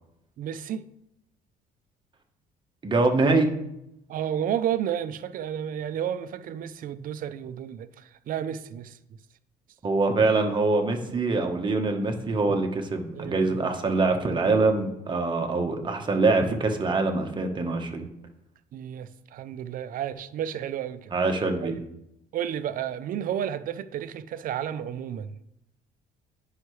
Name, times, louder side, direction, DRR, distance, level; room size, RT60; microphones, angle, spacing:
voice 1, 0.4-0.8 4.1-9.0 13.1-13.7 18.7-21.1 21.6-21.8 22.3-25.4, right 9 dB, 55° right, 13 dB, 0.5 m, -32 dB
voice 2, 2.8-3.5 9.8-18.0 21.1-21.7, right 3 dB, 25° right, 4 dB, 1.1 m, -24 dB
9.6 x 5.6 x 3.2 m, 0.83 s
cardioid pair, 110°, 17 cm